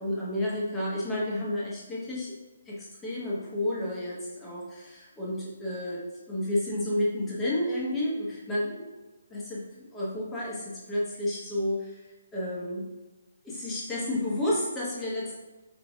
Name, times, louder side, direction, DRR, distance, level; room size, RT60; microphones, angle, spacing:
voice 1, 0.0-2.3 2.7-8.9 9.3-12.0 12.3-12.9 13.4-15.4, left 1 dB, 10° left, -7 dB, 1.2 m, -31 dB
5.0 x 3.3 x 2.4 m, 1.2 s
figure-of-eight pair, 140°, 0 cm